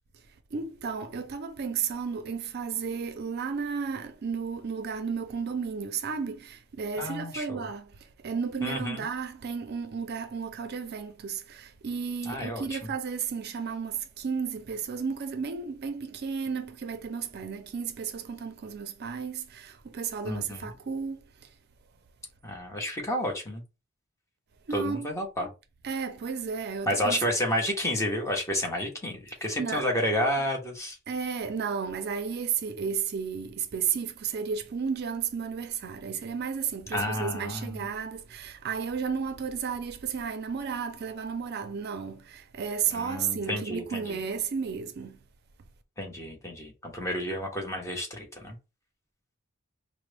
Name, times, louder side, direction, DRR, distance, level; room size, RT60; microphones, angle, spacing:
voice 1, 0.5-21.5 24.7-25.1 25.8-27.2 29.6-29.8 31.1-45.2, right 6 dB, 50° right, 0.4 m, -33 dB
voice 2, 7.0-7.6 8.6-9.1 12.2-12.8 20.2-20.7 22.4-23.6 24.7-25.5 26.9-31.0 36.9-37.9 42.9-44.2 46.0-48.6, left 1 dB, 15° left, 0.9 m, -31 dB
4.9 x 2.0 x 3.3 m
head